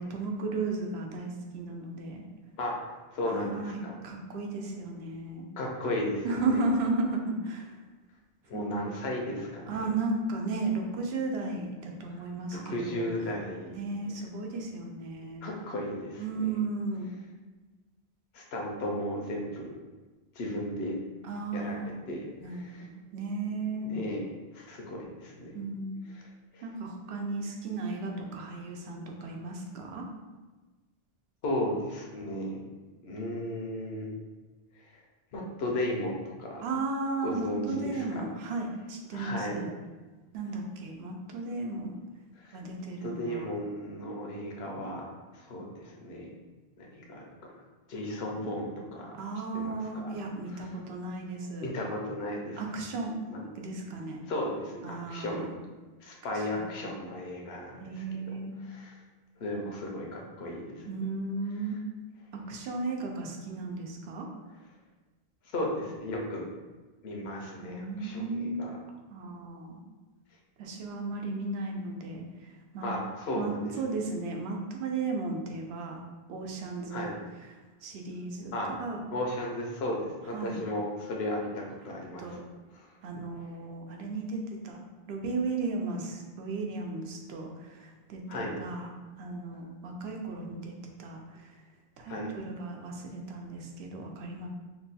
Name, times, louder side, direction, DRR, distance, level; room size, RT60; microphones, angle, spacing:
voice 1, 0.0-2.2 3.3-5.4 6.2-7.7 8.5-8.9 9.7-13.1 13.7-15.5 16.2-17.1 21.2-21.9 22.4-24.0 25.5-26.1 26.6-30.0 36.6-39.7 40.3-42.0 42.5-43.5 49.2-51.7 52.6-53.1 53.5-54.2 54.8-55.6 56.5-56.7 57.8-58.5 60.9-61.8 62.3-64.3 67.6-68.7 69.1-69.8 70.6-72.9 73.3-76.0 76.3-77.1 77.8-78.5 78.8-79.0 80.3-80.6 82.2-82.4 83.0-84.8 85.1-88.9 89.2-90.7 91.0-91.5 92.0-94.5, right 3 dB, 80° right, 1 dB, 0.8 m, -35 dB
voice 2, 3.1-3.9 5.5-6.6 8.5-9.8 12.5-13.8 14.0-14.1 15.4-16.5 18.3-19.7 20.3-21.0 21.5-21.8 22.1-22.9 23.8-24.2 24.5-25.5 26.5-26.6 31.4-32.6 33.0-34.1 34.8-34.9 35.3-36.6 37.2-38.2 39.1-39.6 42.4-42.6 43.0-45.0 45.3-46.3 46.8-47.2 47.9-49.1 49.5-50.1 51.6-52.6 53.3-53.4 54.3-55.5 56.0-58.0 58.6-59.0 59.4-60.9 65.5-66.5 67.0-68.8 72.8-74.0 76.9-77.1 78.5-78.7 79.1-82.4 82.7-82.9 88.3-88.5 92.1-92.3, left 1 dB, 80° left, -1 dB, 0.9 m, -35 dB
3.0 x 2.2 x 4.0 m, 1.2 s
omnidirectional pair, 1.0 m